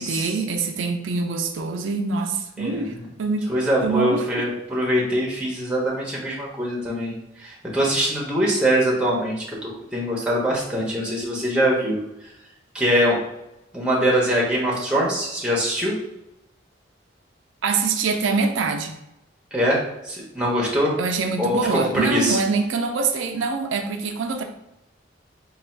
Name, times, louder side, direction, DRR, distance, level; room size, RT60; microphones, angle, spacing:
voice 1, 0.0-3.5 3.8-4.4 17.6-19.0 21.0-24.4, right 4 dB, 80° right, 4 dB, 0.4 m, -24 dB
voice 2, 2.6-3.1 3.5-12.0 12.7-13.2 13.7-15.9 19.5-20.9 21.4-22.4, equal, 5° right, -4 dB, 0.8 m, -23 dB
3.3 x 2.3 x 4.4 m, 0.89 s
head